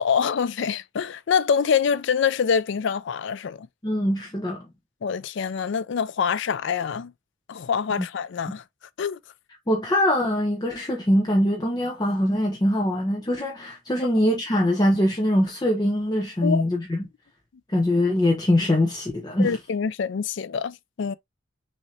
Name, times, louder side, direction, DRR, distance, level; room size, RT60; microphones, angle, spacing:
voice 1, 0.0-3.7 5.0-7.1 7.5-8.6 9.0-9.2 16.4-16.6 19.4-21.1, left 6 dB, 60° left, 0.4 m, -25 dB
voice 2, 3.8-4.6 9.7-17.0 17.7-19.6, left 1 dB, 20° left, 0.8 m, -23 dB
6.3 x 2.8 x 2.7 m
head